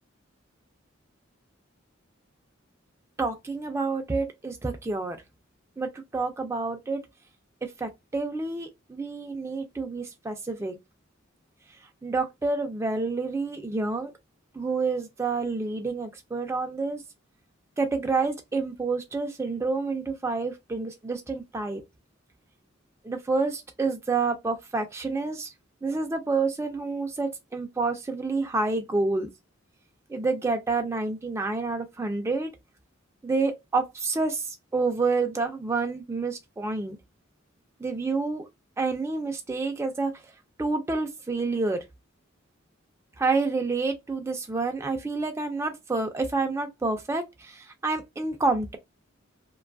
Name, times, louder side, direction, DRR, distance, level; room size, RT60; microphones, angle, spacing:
voice 1, 3.2-5.2 5.8-7.0 7.6-10.8 12.0-14.1 14.5-17.0 17.8-21.8 23.0-25.5 25.8-29.3 30.1-32.5 33.2-37.0 37.8-38.5 38.8-40.1 40.6-41.8 43.2-48.8, right 3 dB, 15° right, 0.3 m, -28 dB
2.5 x 2.2 x 2.5 m
head